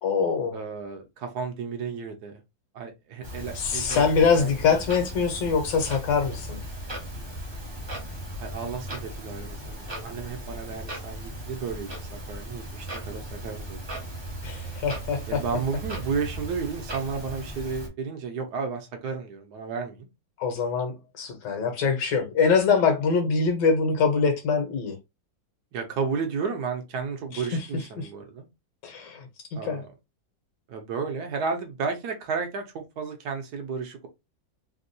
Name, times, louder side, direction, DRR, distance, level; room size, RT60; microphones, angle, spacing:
voice 1, 0.0-0.6 3.5-6.6 14.4-15.4 20.4-25.0 27.3-27.4 28.0-28.1 28.8-29.8, left 5 dB, 70° left, 1.5 m, -24 dB
voice 2, 0.5-2.4 2.7-4.5 8.4-14.2 15.3-20.1 25.7-28.5 29.6-29.9 30.7-34.1, right 5 dB, 65° right, 1.1 m, -33 dB
Clock, 3.2-17.9, right 1 dB, 40° right, 0.3 m, -37 dB
3.5 x 2.3 x 2.6 m
omnidirectional pair, 2.0 m